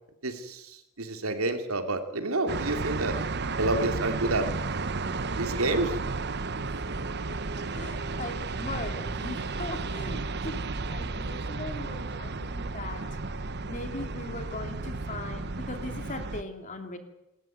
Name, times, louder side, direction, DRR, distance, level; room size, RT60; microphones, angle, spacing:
voice 1, 0.2-3.1 3.6-4.5 5.0-6.0, right 2 dB, 85° right, 6 dB, 2.9 m, -29 dB
sound 1, 2.5-16.4, right 3 dB, 50° right, 1.0 m, -33 dB
voice 2, 7.6-13.0 13.7-17.0, left 2 dB, 35° left, 6 dB, 2.7 m, -39 dB
28.0 x 13.5 x 9.3 m, 0.95 s
head